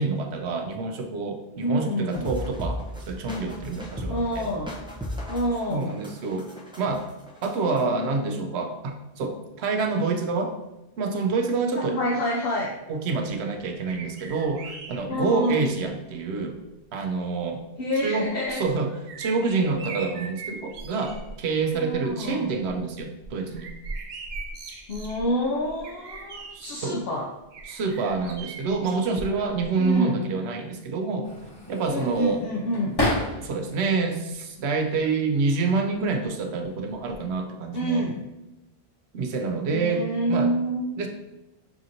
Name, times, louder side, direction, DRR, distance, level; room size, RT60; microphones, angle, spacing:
voice 1, 0.0-2.8 3.1-4.5 5.7-6.5 6.8-7.0 7.4-10.5 11.0-12.0 12.9-16.5 16.9-17.6 18.0-18.9 19.2-23.7 26.5-27.0 27.7-31.3 31.7-32.4 33.4-38.0 39.1-40.5 41.0-41.1, right 4 dB, 85° right, 4 dB, 0.9 m, -27 dB
voice 2, 1.6-2.3 4.1-4.7 5.3-5.9 11.7-12.7 15.1-15.7 17.8-18.6 21.7-22.5 24.9-27.3 29.8-30.3 31.9-33.0 37.7-38.2 39.7-40.9, equal, 70° left, -3 dB, 0.8 m, -27 dB
sound 1, 2.1-7.8, equal, 5° right, 0.4 m, -36 dB
sound 2, 13.9-15.9 16.8-16.9 18.4-21.4 21.7-22.1 22.5-26.9 27.5-29.7 29.9-30.0, right 3 dB, 55° right, 0.5 m, -40 dB
sound 3, 31.2-33.7 34.1-35.0 35.9-36.3 36.6-37.4, left 1 dB, 25° left, 0.9 m, -31 dB
5.9 x 2.5 x 2.7 m, 0.98 s
omnidirectional pair, 1.1 m